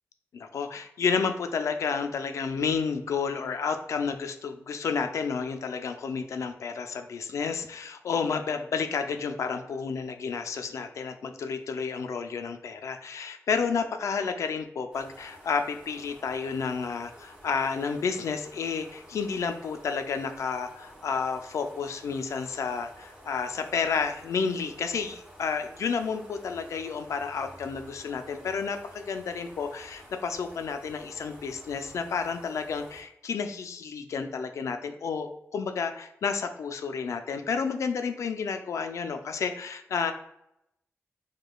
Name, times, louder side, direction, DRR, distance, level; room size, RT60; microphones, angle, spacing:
voice 1, 0.3-40.1, left 5 dB, 70° left, 7 dB, 0.3 m, -31 dB
sound 1, 14.9-33.0, equal, 15° right, 1.3 m, -51 dB
4.9 x 2.2 x 2.2 m, 0.80 s
wide cardioid pair, 145°, 5 cm